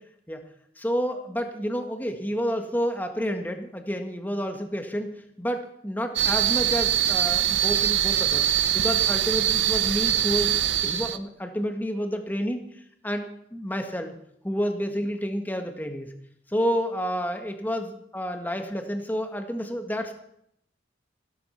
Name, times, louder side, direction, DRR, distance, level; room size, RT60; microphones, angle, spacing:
voice 1, 0.8-14.1 14.4-16.1 16.5-20.1, equal, 10° left, 5 dB, 1.6 m, -30 dB
sound 1, 6.2-11.2, right 11 dB, 85° right, 0.9 m, -23 dB
15.5 x 12.5 x 5.7 m, 0.73 s
head